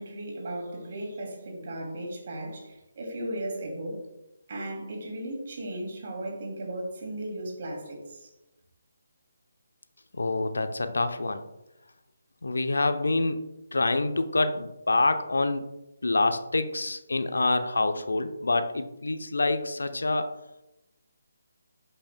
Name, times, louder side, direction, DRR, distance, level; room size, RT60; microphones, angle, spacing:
voice 1, 0.0-4.0 4.5-8.3, right 1 dB, 40° right, -1 dB, 2.5 m, -36 dB
voice 2, 10.2-11.4 12.4-13.4 13.7-15.7 16.0-20.3, left 2 dB, 65° left, 8 dB, 0.6 m, -26 dB
11.5 x 5.6 x 2.2 m, 0.93 s
figure-of-eight pair, 145°, 0 cm